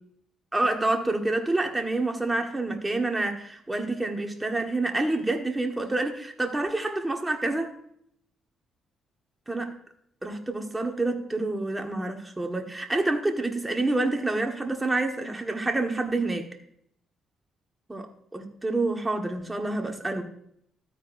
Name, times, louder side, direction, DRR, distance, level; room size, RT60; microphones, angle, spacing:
voice 1, 0.5-7.7 9.5-9.7 10.2-16.5 17.9-18.1 18.3-20.2, right 2 dB, 15° right, 3 dB, 1.6 m, -28 dB
13.0 x 9.4 x 2.7 m, 0.69 s
cardioid pair, 90°, 0 cm